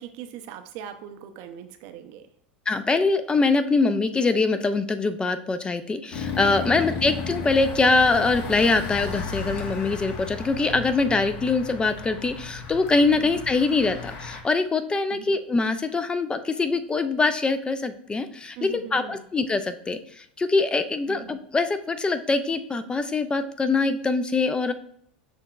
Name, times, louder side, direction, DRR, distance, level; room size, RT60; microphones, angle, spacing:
voice 1, 0.0-2.3 6.7-7.0 13.1-13.4 15.1-15.3 18.6-19.2 21.1-21.4, right 9 dB, 55° right, 8 dB, 0.5 m, -40 dB
voice 2, 2.7-24.7, left 3 dB, 15° left, 10 dB, 0.4 m, -23 dB
sound 1, 6.1-14.4, left 4 dB, 50° left, 1.0 m, -34 dB
6.6 x 2.8 x 2.3 m, 0.66 s
hypercardioid pair, 85°, 6 cm